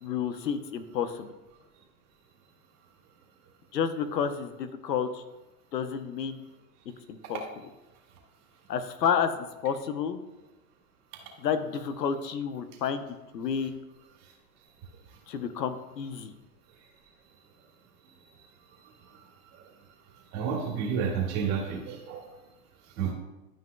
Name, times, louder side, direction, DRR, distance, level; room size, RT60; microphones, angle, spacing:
voice 1, 0.0-1.3 3.7-5.2 5.7-6.4 7.1-7.4 8.7-9.3 9.6-10.2 11.4-13.0 13.3-13.7 15.3-16.3, left 7 dB, 85° left, 10 dB, 1.0 m, -30 dB
voice 2, 20.3-22.2 23.0-23.1, right 6 dB, 35° right, -1 dB, 2.0 m, -30 dB
12.5 x 5.4 x 2.3 m, 1.0 s
hypercardioid pair, 135°, 48 cm